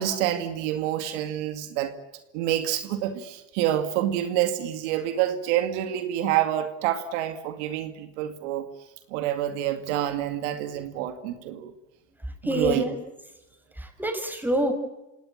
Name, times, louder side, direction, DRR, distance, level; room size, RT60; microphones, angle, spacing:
voice 1, 0.0-1.9 2.3-8.7 9.1-11.7 12.5-12.8, right 12 dB, 90° right, 8 dB, 2.4 m, -27 dB
voice 2, 12.2-13.0 13.7-14.7, right 1 dB, 5° right, 5 dB, 6.5 m, -27 dB
26.0 x 18.5 x 8.8 m, 1.0 s
supercardioid pair, 90°, 34 cm